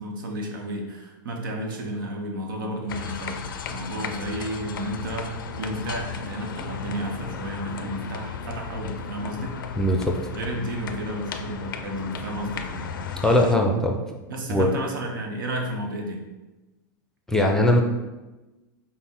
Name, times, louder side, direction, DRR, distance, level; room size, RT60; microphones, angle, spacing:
voice 1, 0.0-3.4 3.7-5.3 5.6-9.6 10.3-12.9 14.3-16.2, right 1 dB, 85° right, 2 dB, 0.9 m, -32 dB
sound 1, 2.9-13.6, left 6 dB, 90° left, 0.4 m, -35 dB
voice 2, 9.8-10.3 13.2-14.0 14.5-14.7 17.3-17.8, left 1 dB, 5° left, 1 dB, 0.5 m, -20 dB
5.7 x 2.1 x 4.2 m, 1.1 s
hypercardioid pair, 120°, 11 cm